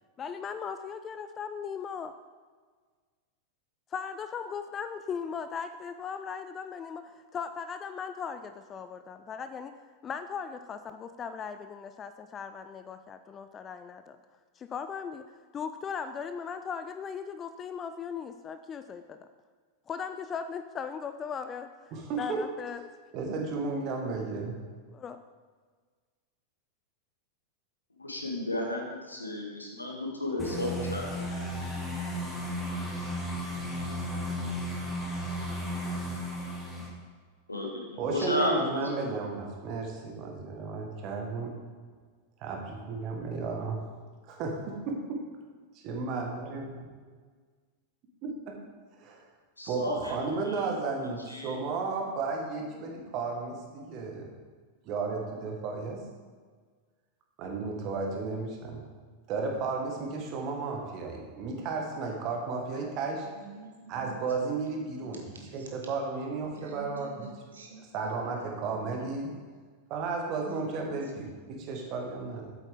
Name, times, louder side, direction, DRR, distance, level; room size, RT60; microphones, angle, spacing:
voice 1, 0.2-2.1 3.9-9.7 10.0-14.2 14.6-19.3 19.9-21.7 22.2-22.8 24.9-25.2, left 6 dB, 25° left, 10 dB, 0.4 m, -38 dB
voice 2, 21.9-22.5 23.1-24.6 38.0-41.6 42.4-43.8 44.3-45.3 45.8-46.7 48.2-48.5 49.0-49.2 49.7-54.3 54.8-56.0 57.4-58.8 59.3-63.3 63.9-65.2 65.5-67.3 67.9-69.4 69.9-72.6, right 4 dB, 40° right, 1 dB, 1.6 m, -33 dB
voice 3, 28.0-31.3 36.7-36.8 37.5-38.5 49.6-50.6 51.3-51.6, left 1 dB, 80° left, 0 dB, 1.6 m, -33 dB
sound 1, 30.4-36.9, equal, 5° left, 1.9 m, -34 dB
voice 4, 63.3-64.7 65.0-65.7 66.5-69.4 70.5-71.1 71.5-71.7, right 3 dB, 70° right, 1 dB, 1.5 m, -49 dB
8.1 x 7.9 x 3.7 m, 1.5 s
figure-of-eight pair, 90°, 0 cm